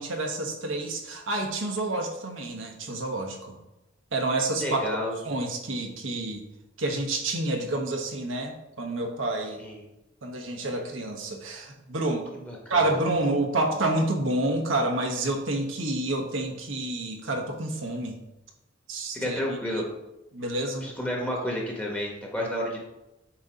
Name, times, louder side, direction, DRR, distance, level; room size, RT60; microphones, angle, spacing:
voice 1, 0.0-3.6 4.1-5.0 5.2-6.4 6.8-9.6 10.2-12.3 12.7-18.2 18.9-19.4 19.7-19.8 20.3-20.9 21.4-21.5, right 2 dB, 90° right, 3 dB, 1.0 m, -29 dB
voice 2, 4.6-5.1 9.6-9.8 12.3-13.0 19.1-19.8 20.8-22.8, left 1 dB, 10° left, -2 dB, 1.1 m, -31 dB
7.3 x 2.8 x 5.0 m, 0.94 s
head